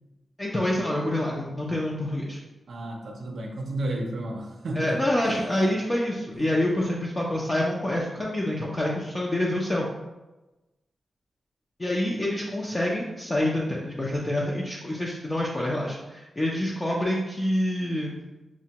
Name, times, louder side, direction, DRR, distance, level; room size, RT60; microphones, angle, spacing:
voice 1, 0.4-2.4 4.8-9.9 11.8-18.1, left 1 dB, 25° left, -4 dB, 0.5 m, -27 dB
voice 2, 2.7-5.4 6.4-6.5, right 1 dB, 80° right, 1 dB, 0.5 m, -33 dB
5.9 x 2.2 x 2.8 m, 1.1 s
wide cardioid pair, 140°, 0 cm